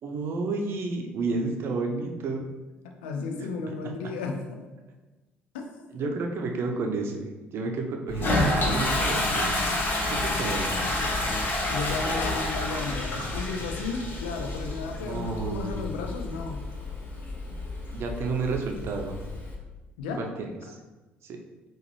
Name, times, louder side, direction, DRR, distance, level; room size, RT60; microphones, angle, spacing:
voice 1, 0.0-2.5 3.4-3.5 5.9-9.6 10.1-10.8 12.0-12.2 15.0-15.8 17.9-19.2 20.2-20.8 21.2-21.4, right 3 dB, 50° right, 3 dB, 0.6 m, -31 dB
voice 2, 3.0-4.4 5.5-6.1 11.0-11.1 11.7-16.6 20.0-20.2, left 4 dB, 75° left, 3 dB, 0.5 m, -34 dB
Toilet flush, 8.1-19.5, left 2 dB, 40° left, 1.0 m, -29 dB
5.8 x 2.5 x 3.1 m, 1.2 s
figure-of-eight pair, 50°, 5 cm